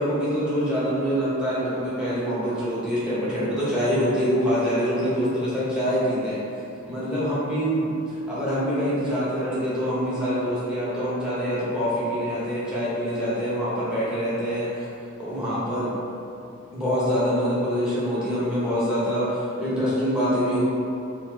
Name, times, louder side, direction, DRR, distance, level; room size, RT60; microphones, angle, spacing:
voice 1, 0.0-6.4 6.9-14.9 15.2-15.9 16.7-20.6, equal, 5° right, -11 dB, 0.9 m, -25 dB
4.0 x 2.5 x 2.8 m, 2.7 s
head